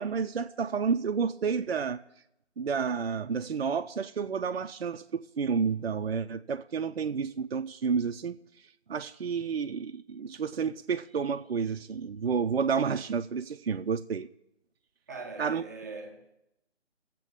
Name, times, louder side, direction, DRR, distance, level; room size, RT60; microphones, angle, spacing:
voice 1, 0.0-2.0 2.6-8.4 8.9-14.3 15.4-15.6, right 6 dB, 55° right, 0.5 m, -30 dB
voice 2, 15.1-16.3, right 3 dB, 15° right, 0.7 m, -41 dB
22.0 x 7.5 x 3.7 m
figure-of-eight pair, 150°, 35 cm